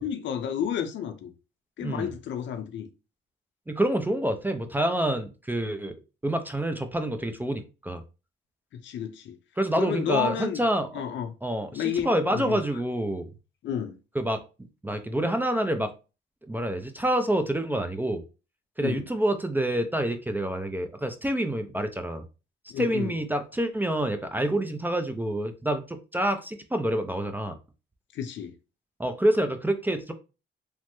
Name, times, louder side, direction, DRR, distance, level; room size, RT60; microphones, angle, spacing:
voice 1, 0.0-1.3 1.8-2.9 8.7-9.4 9.8-10.6 10.9-11.3 11.7-12.8 13.6-14.0 18.8-19.0 22.7-23.1 28.1-28.5, left 9 dB, 70° left, 0.5 m, -31 dB
voice 2, 3.7-5.9 6.2-8.0 9.6-11.0 11.4-13.3 14.2-14.4 14.8-15.9 16.5-18.2 18.8-22.2 22.8-27.6 29.0-30.1, right 1 dB, 10° right, 0.4 m, -27 dB
3.1 x 2.0 x 3.0 m
cardioid pair, 90°, 20 cm